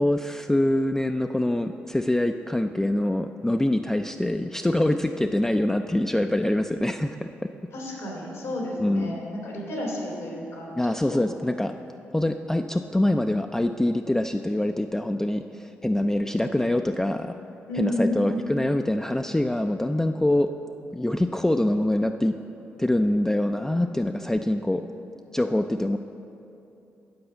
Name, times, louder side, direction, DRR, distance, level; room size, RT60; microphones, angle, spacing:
voice 1, 0.0-7.5 8.8-9.1 10.8-11.8 12.1-17.4 17.7-20.5 20.9-22.4 22.8-24.9 25.3-26.0, left 1 dB, 10° left, 5 dB, 0.3 m, -24 dB
voice 2, 7.7-10.7 11.1-11.2 17.7-18.4, left 1 dB, 85° left, -3 dB, 2.0 m, -31 dB
7.9 x 4.9 x 6.9 m, 2.8 s
supercardioid pair, 50°, 6 cm